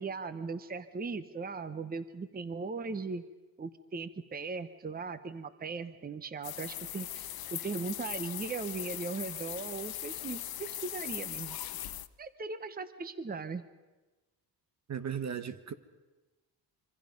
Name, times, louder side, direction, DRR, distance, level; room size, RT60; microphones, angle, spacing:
voice 1, 0.0-3.2 3.6-7.2 7.5-11.6 12.2-13.6, right 4 dB, 25° right, 0.9 m, -38 dB
sound 1, 6.4-12.1, left 12 dB, 65° left, 0.8 m, -40 dB
voice 2, 14.9-15.7, right 8 dB, 45° right, 1.0 m, -36 dB
26.5 x 24.5 x 5.3 m
cardioid pair, 125°, 39 cm